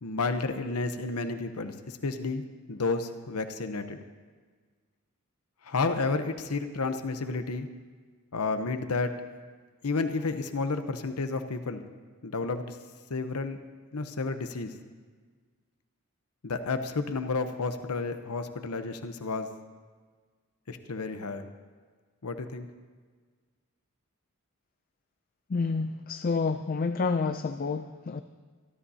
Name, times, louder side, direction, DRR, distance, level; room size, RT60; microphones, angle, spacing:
voice 1, 0.0-4.0 5.6-7.7 8.3-9.1 9.8-11.9 12.2-12.8 13.1-13.6 13.9-14.7 16.4-19.5 20.7-21.5 22.2-22.7, left 3 dB, 85° left, 8 dB, 0.8 m, -31 dB
voice 2, 25.5-28.2, left 4 dB, 40° left, 10 dB, 0.4 m, -29 dB
26.0 x 12.5 x 2.8 m, 1.5 s
head